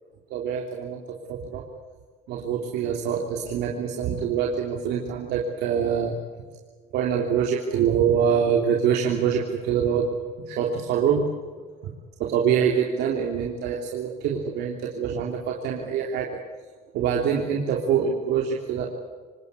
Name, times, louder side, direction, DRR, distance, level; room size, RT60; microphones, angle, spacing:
voice 1, 0.3-1.0 1.3-1.6 2.3-6.2 6.9-10.1 10.4-11.3 12.2-16.3 16.9-18.9, right 7 dB, 85° right, 0 dB, 3.2 m, -25 dB
27.0 x 19.0 x 8.3 m, 1.5 s
cardioid pair, 110°, 17 cm